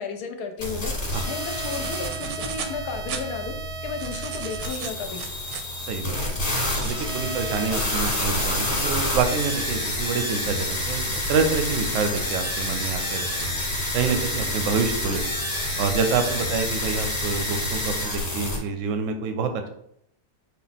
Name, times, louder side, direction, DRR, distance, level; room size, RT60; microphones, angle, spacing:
voice 1, 0.0-3.6 3.8-5.2, left 5 dB, 70° left, 5 dB, 1.0 m, -33 dB
sound 1, 0.6-18.6, left 1 dB, 25° left, 1.1 m, -28 dB
sound 2, 1.4-2.8 3.1-3.2 3.8-7.2 7.7-12.9 13.4-13.7 14.4-14.5 14.8-14.9 15.3-15.8 16.2-17.1 17.6-17.9, right 7 dB, 90° right, 1.3 m, -38 dB
voice 2, 5.9-6.2 6.8-13.5 13.9-15.4 15.8-19.7, right 5 dB, 65° right, 7 dB, 0.8 m, -27 dB
5.4 x 2.3 x 4.0 m, 0.71 s
omnidirectional pair, 1.9 m